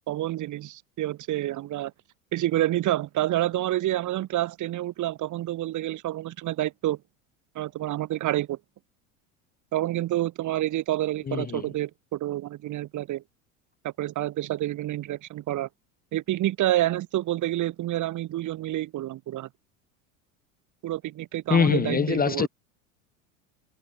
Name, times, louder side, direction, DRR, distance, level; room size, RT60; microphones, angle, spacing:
voice 1, 0.1-1.9 2.3-7.0 7.6-8.6 9.7-13.2 13.8-15.7 16.1-19.5 20.8-22.5, right 14 dB, 45° right, 3.9 m, -28 dB
voice 2, 11.3-11.6 21.5-22.5, left 6 dB, 20° left, 1.5 m, -23 dB
hypercardioid pair, 85°, 41 cm